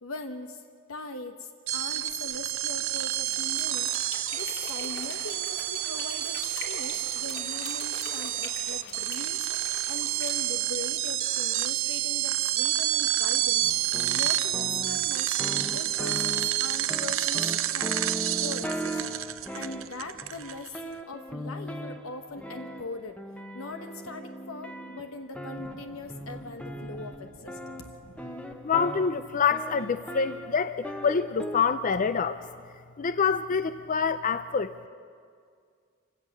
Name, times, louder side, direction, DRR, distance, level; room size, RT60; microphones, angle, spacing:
voice 1, 0.0-0.6 0.9-13.7 14.1-15.3 15.7-19.0 19.5-23.2 23.5-27.7, left 2 dB, 85° left, 6 dB, 1.0 m, -41 dB
sound 1, 1.7-20.8, right 13 dB, 75° right, 0.6 m, -29 dB
sound 2, 3.2-10.3, left 4 dB, 65° left, 3.0 m, -43 dB
sound 3, 13.6-31.6, equal, 5° left, 1.0 m, -39 dB
voice 2, 28.6-32.4 33.0-34.9, left 6 dB, 40° left, 11 dB, 0.5 m, -26 dB
27.5 x 17.0 x 6.5 m, 2.1 s
head